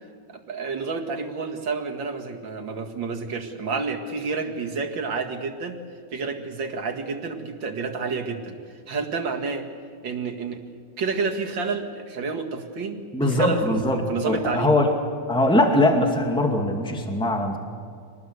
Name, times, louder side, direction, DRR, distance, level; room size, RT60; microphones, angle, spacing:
voice 1, 0.3-5.8 6.1-8.6 8.9-9.7 10.0-10.6 11.0-14.8, right 4 dB, 85° right, 4 dB, 2.8 m, -29 dB
voice 2, 13.1-14.9 15.3-17.6, left 1 dB, 5° left, 3 dB, 2.2 m, -21 dB
26.0 x 19.5 x 8.1 m, 2.3 s
omnidirectional pair, 2.0 m